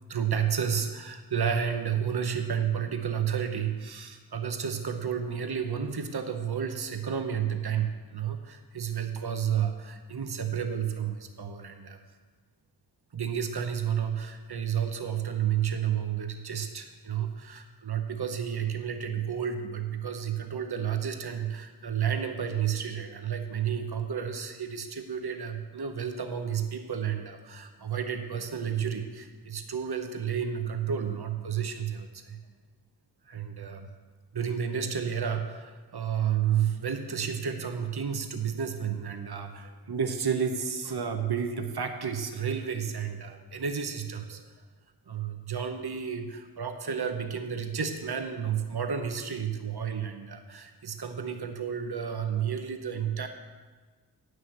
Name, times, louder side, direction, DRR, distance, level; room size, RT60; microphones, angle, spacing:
voice 1, 0.1-12.0 13.1-32.4 33.3-33.9 34.3-44.4 45.1-53.3, right 8 dB, 70° right, 6 dB, 0.9 m, -31 dB
9.3 x 6.3 x 7.2 m, 1.4 s
wide cardioid pair, 50°, 40 cm